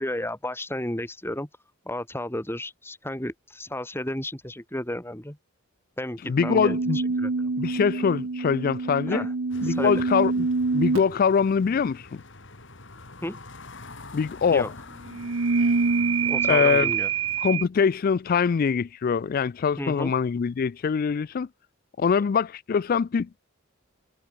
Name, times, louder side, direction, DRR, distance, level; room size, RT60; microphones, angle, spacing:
voice 1, 0.0-1.5 1.9-5.4 6.0-7.5 9.1-9.3 9.7-10.0 13.2-13.4 14.5-14.7 16.3-17.1 19.8-20.1, left 1 dB, 10° left, 3.3 m, -33 dB
voice 2, 6.2-7.0 7.6-9.3 9.6-10.5 10.7-12.2 14.1-14.7 16.5-16.9 17.4-21.5 22.0-23.4, left 6 dB, 45° left, 0.3 m, -23 dB
sound 1, 6.4-11.2 15.1-17.6, right 4 dB, 80° right, 0.9 m, -26 dB
sound 2, 9.5-17.5, left 2 dB, 60° left, 3.1 m, -46 dB
head